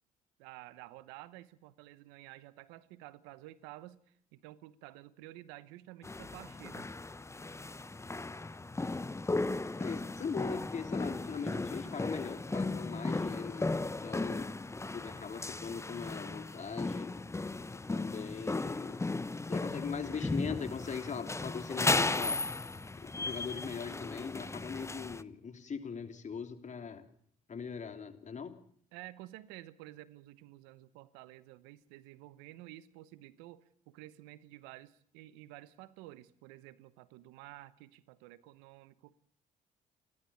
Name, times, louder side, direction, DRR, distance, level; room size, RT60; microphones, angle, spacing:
voice 1, 0.4-6.9 28.9-39.1, right 16 dB, 90° right, 17 dB, 1.0 m, -51 dB
sound 1, 6.0-25.2, left 3 dB, 15° left, 1.0 m, -36 dB
voice 2, 9.8-13.7 14.0-14.5 14.9-17.1 17.9-19.0 19.5-22.5 23.0-27.0 27.5-28.6, left 6 dB, 45° left, 8 dB, 3.2 m, -40 dB
30.0 x 12.0 x 8.6 m, 0.64 s
supercardioid pair, 60°, 17 cm